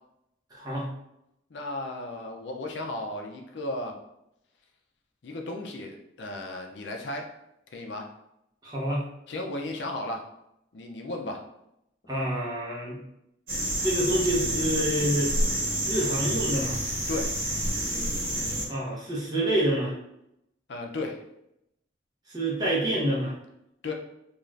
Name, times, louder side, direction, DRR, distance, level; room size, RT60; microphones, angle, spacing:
voice 1, 0.5-0.9 8.6-9.0 12.1-13.0 13.8-15.3 15.9-16.8 18.7-19.9 22.3-23.3, right 1 dB, 20° right, -5 dB, 0.8 m, -27 dB
voice 2, 1.5-4.0 5.2-7.3 7.7-8.1 9.3-10.3 10.7-11.4 17.1-17.3 20.7-21.2 23.8-23.9, left 2 dB, 65° left, 2 dB, 0.4 m, -34 dB
sound 1, 13.5-18.6, right 1 dB, 50° right, 1.1 m, -28 dB
2.5 x 2.4 x 3.2 m, 0.81 s
head